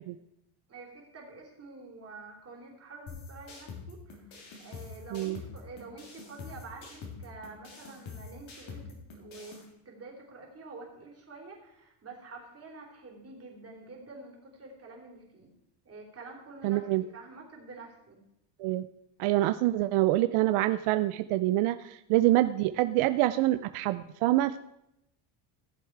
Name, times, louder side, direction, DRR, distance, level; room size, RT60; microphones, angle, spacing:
voice 1, 0.7-15.5 15.8-18.2, right 3 dB, 30° right, 0 dB, 3.3 m, -48 dB
sound 1, 3.1-9.6, left 4 dB, 65° left, 3.4 m, -46 dB
voice 2, 16.6-17.0 18.6-18.9 19.2-24.6, right 16 dB, 80° right, 11 dB, 0.6 m, -26 dB
15.0 x 7.2 x 4.6 m, 0.83 s
cardioid pair, 130°, 50 cm